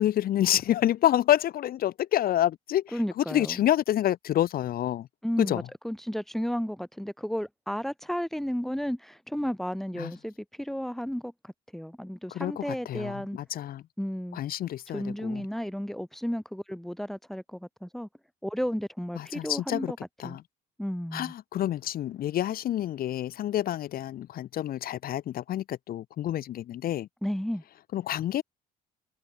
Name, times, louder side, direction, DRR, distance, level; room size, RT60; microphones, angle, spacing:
voice 1, 0.0-5.1 5.4-5.7 10.0-10.1 12.3-13.8 14.3-15.4 19.2-19.9 20.2-20.4 21.1-27.1 27.9-28.4, left 12 dB, 60° left, 1.9 m, -28 dB
voice 2, 2.9-3.6 5.2-11.3 11.7-13.4 14.0-14.4 14.9-18.1 18.4-20.0 20.2-20.4 20.8-21.3 27.2-27.6, equal, ahead, 6.7 m, -33 dB
cardioid pair, 110°, 17 cm